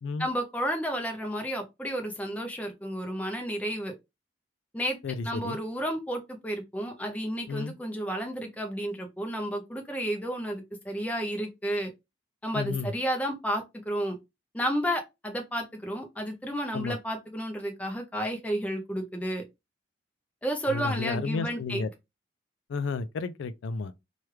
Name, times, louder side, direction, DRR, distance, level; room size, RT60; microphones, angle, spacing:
voice 1, 0.2-3.9 4.7-5.0 5.2-11.9 12.4-14.2 14.5-19.4 20.4-21.8, equal, 5° left, 0.5 m, -32 dB
voice 2, 5.0-5.6 7.5-7.7 12.5-12.9 16.7-17.0 20.7-21.9 22.7-23.9, left 4 dB, 75° left, 0.3 m, -32 dB
3.2 x 2.3 x 3.0 m
head